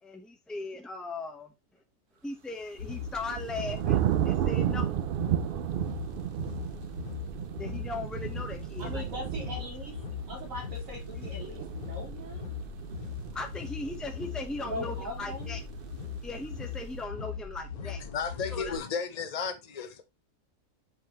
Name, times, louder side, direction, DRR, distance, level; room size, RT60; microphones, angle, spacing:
voice 1, 0.0-1.8 2.2-4.0 4.2-5.0 7.6-9.1 13.3-15.6 16.2-18.0 18.5-18.8, left 3 dB, ahead, 0.8 m, -38 dB
sound 1, 2.7-17.0, right 12 dB, 85° right, 0.4 m, -34 dB
sound 2, 2.8-18.8, left 6 dB, 85° left, 1.8 m, -40 dB
voice 2, 8.8-9.9 10.3-12.5 14.6-15.6, equal, 65° right, 2.8 m, -40 dB
voice 3, 17.8-20.0, left 6 dB, 35° left, 0.8 m, -34 dB
5.9 x 5.6 x 3.0 m
omnidirectional pair, 1.5 m